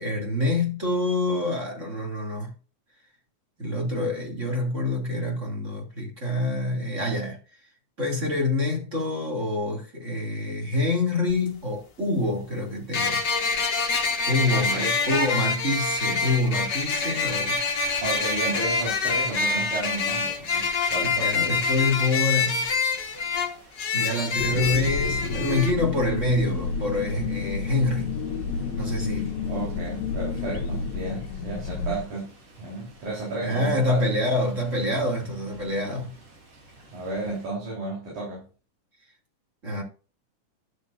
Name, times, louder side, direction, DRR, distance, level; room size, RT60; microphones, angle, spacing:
voice 1, 0.0-2.5 3.6-7.4 8.0-13.2 14.3-17.6 21.2-22.7 23.9-28.1 28.8-29.3 33.4-36.1 39.6-39.8, left 2 dB, 25° right, 2.9 m, -26 dB
sound 1, 11.3-11.4 12.9-25.7, left 4 dB, 45° left, 1.6 m, -26 dB
voice 2, 14.5-15.3 18.0-21.6 29.4-34.1 36.9-38.5, right 2 dB, 80° right, 5.3 m, -33 dB
sound 2, 17.6-37.4, right 2 dB, 50° right, 3.9 m, -49 dB
sound 3, 24.4-32.1, left 5 dB, 75° left, 2.2 m, -30 dB
11.5 x 8.1 x 2.6 m
omnidirectional pair, 3.5 m